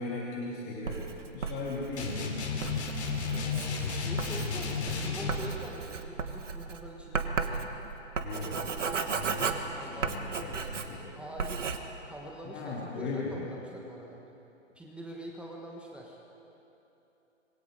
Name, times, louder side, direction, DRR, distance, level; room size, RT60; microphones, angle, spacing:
voice 1, 0.0-2.3 8.2-8.7 9.0-11.0 12.4-13.5, left 3 dB, 25° left, -4 dB, 2.6 m, -38 dB
Writing, 0.9-11.1 11.4-11.8, right 5 dB, 70° right, 1.8 m, -35 dB
sound 1, 2.0-5.5, left 5 dB, 60° left, 3.9 m, -33 dB
voice 2, 3.3-7.8 9.7-11.7 12.1-14.2 14.7-16.2, right 1 dB, 5° right, -1 dB, 1.4 m, -45 dB
26.0 x 22.5 x 5.0 m, 2.9 s
figure-of-eight pair, 125°, 38 cm